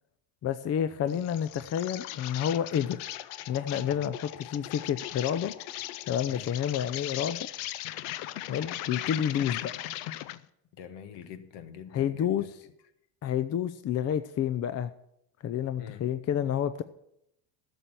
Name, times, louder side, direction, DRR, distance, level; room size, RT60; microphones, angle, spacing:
voice 1, 0.4-3.0 3.5-5.5 6.1-7.5 8.5-9.6 11.9-12.6 13.2-14.9 15.4-16.8, left 9 dB, 35° left, 0.5 m, -29 dB
Insect, 1.1-10.5, left 14 dB, 75° left, 0.7 m, -38 dB
voice 2, 10.8-12.5 15.8-16.0, left 8 dB, 60° left, 1.4 m, -45 dB
12.0 x 7.1 x 7.5 m
supercardioid pair, 110°, 48 cm